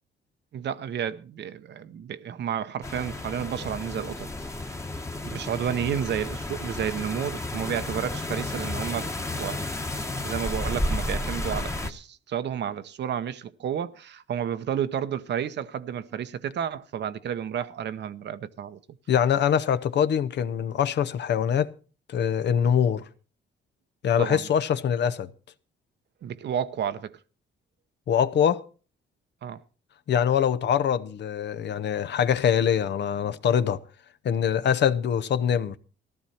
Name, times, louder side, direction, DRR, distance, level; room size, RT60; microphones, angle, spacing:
voice 1, 0.5-4.3 4.7-4.9 5.2-9.7 10.2-18.8 24.2-24.5 26.2-27.2 29.4-29.6, right 9 dB, 60° right, 0.9 m, -31 dB
sound 1, 2.8-11.9, left 2 dB, 15° left, 1.2 m, -32 dB
voice 2, 19.1-21.7 22.1-23.0 24.0-25.3 28.1-28.6 30.1-33.8 34.2-35.8, left 8 dB, 60° left, 0.8 m, -23 dB
14.5 x 12.5 x 4.3 m
cardioid pair, 90°, 20 cm